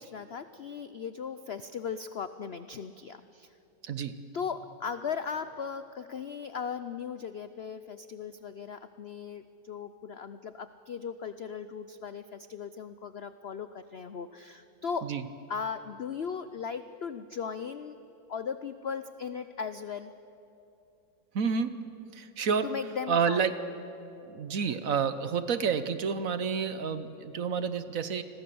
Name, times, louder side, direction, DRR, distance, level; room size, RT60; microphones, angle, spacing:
voice 1, 0.0-3.5 4.3-15.1 15.5-18.0 18.3-20.1 22.6-23.4, left 6 dB, 75° left, 11 dB, 0.5 m, -37 dB
voice 2, 3.8-4.2 15.0-15.2 21.3-21.8 22.1-22.7 23.1-23.5 24.3-28.2, right 6 dB, 55° right, 11 dB, 1.2 m, -29 dB
30.0 x 21.5 x 7.0 m, 2.8 s
omnidirectional pair, 2.0 m